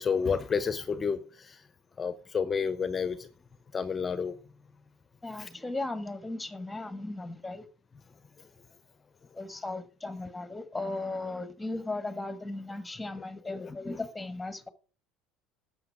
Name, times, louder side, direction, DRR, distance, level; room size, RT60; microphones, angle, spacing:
voice 1, 0.0-1.6 2.0-3.3 3.7-4.3 5.4-5.5 13.1-14.0, left 6 dB, 30° left, 0.9 m, -31 dB
voice 2, 5.2-7.7 9.3-14.7, left 2 dB, 10° left, 1.7 m, -36 dB
12.5 x 8.4 x 4.9 m
hypercardioid pair, 70°, 0 cm